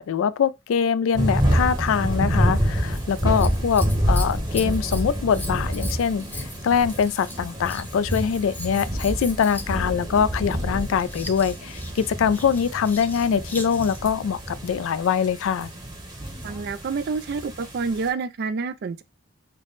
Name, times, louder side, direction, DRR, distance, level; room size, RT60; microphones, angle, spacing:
voice 1, 0.0-15.7, left 7 dB, 70° left, 0.3 m, -23 dB
sound 1, 1.1-18.1, equal, 20° right, 0.8 m, -27 dB
Scissors, 2.8-14.2 16.1-16.7 17.4-17.5, left 2 dB, 10° left, 0.5 m, -41 dB
voice 2, 16.4-19.0, right 4 dB, 50° right, 0.3 m, -28 dB
3.3 x 2.1 x 3.8 m
head